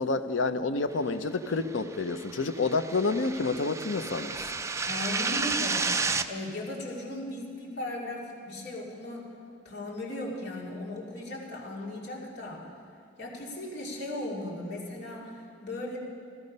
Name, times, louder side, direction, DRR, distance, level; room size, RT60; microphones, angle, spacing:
voice 1, 0.0-4.5, left 3 dB, 85° left, 10 dB, 0.7 m, -29 dB
sound 1, 1.8-6.3, right 4 dB, 15° right, 0.4 m, -31 dB
voice 2, 4.9-5.9 6.3-9.3 9.6-12.6 13.2-16.0, left 1 dB, 60° left, -4 dB, 2.7 m, -37 dB
15.5 x 14.5 x 5.4 m, 2.3 s
head